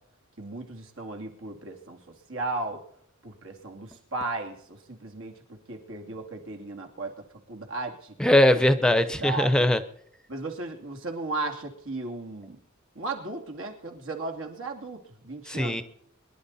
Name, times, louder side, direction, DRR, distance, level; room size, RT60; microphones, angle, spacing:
voice 1, 0.4-2.0 2.3-2.8 3.2-7.1 7.5-8.1 8.5-8.7 9.2-9.8 10.3-12.6 12.9-15.8, right 3 dB, 70° right, 2 dB, 2.9 m, -35 dB
voice 2, 8.2-9.8 15.5-15.8, left 1 dB, 5° left, 11 dB, 0.8 m, -21 dB
24.0 x 11.5 x 4.2 m, 0.71 s
head